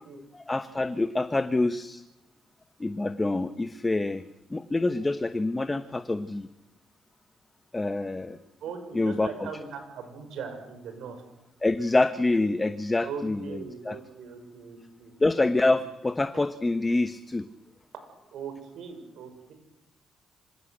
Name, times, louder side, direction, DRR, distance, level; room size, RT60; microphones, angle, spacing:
voice 1, 0.3-2.0 2.8-4.2 4.5-6.5 7.7-8.4 8.9-9.5 11.6-13.6 13.8-14.0 15.2-17.5, left 2 dB, 20° left, 10 dB, 1.1 m, -26 dB
voice 2, 8.6-11.2 13.0-15.1 15.5-15.7 18.3-19.5, right 6 dB, 80° right, 6 dB, 6.4 m, -40 dB
26.0 x 16.5 x 8.0 m, 0.96 s
cardioid pair, 90°, 0 cm